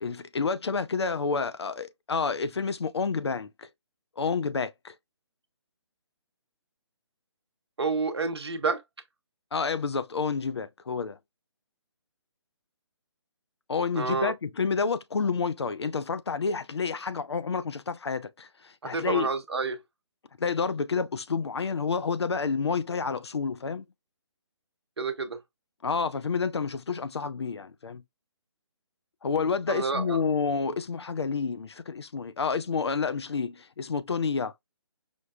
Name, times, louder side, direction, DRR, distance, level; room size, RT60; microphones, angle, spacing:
voice 1, 0.0-3.7 4.2-4.9 9.5-11.2 13.7-19.3 20.4-23.9 25.8-28.0 29.2-34.5, left 5 dB, 65° left, 0.4 m, -29 dB
voice 2, 7.8-8.8 13.9-14.3 18.8-19.8 25.0-25.4 29.7-30.2, right 4 dB, 60° right, 0.8 m, -29 dB
5.1 x 2.0 x 2.4 m
figure-of-eight pair, 140°, 15 cm